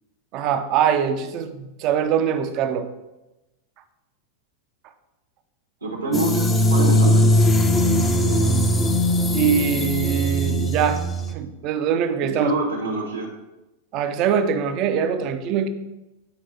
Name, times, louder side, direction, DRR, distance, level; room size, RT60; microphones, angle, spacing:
voice 1, 0.3-2.9 9.3-11.0 11.3-12.5 13.9-15.7, right 8 dB, 40° right, 9 dB, 0.6 m, -23 dB
voice 2, 5.8-7.4 12.4-13.3, right 2 dB, 80° right, -1 dB, 1.3 m, -26 dB
sound 1, 6.1-11.3, left 1 dB, 20° left, 0.6 m, -19 dB
8.8 x 4.6 x 2.9 m, 1.0 s
figure-of-eight pair, 90°, 0 cm